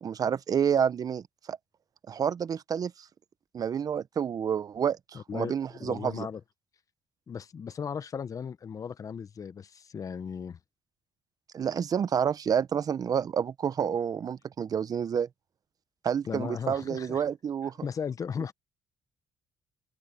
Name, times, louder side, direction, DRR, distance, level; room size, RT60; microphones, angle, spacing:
voice 1, 0.0-1.2 1.5-1.6 2.1-2.9 3.5-6.3 11.5-15.3 16.0-17.7, right 8 dB, 50° right, 1.0 m, -29 dB
voice 2, 5.1-6.4 7.3-10.6 16.2-17.2 17.8-18.5, left 6 dB, 45° left, 1.1 m, -36 dB
open air
supercardioid pair, 70°, 8 cm